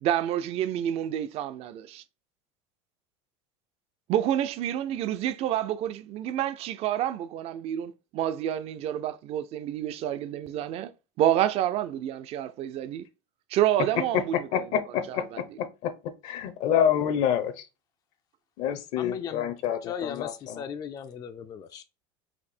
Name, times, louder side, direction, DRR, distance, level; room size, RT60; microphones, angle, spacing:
voice 1, 0.0-2.0 4.1-10.9 11.2-13.0 13.5-14.6 15.1-15.4, right 11 dB, 45° right, 0.5 m, -28 dB
voice 2, 14.5-15.9 16.2-17.6 18.6-20.6, left 9 dB, 60° left, 0.7 m, -27 dB
voice 3, 19.0-19.5 19.8-21.8, left 8 dB, 25° left, 0.4 m, -37 dB
4.3 x 2.7 x 4.3 m
supercardioid pair, 125°, 15 cm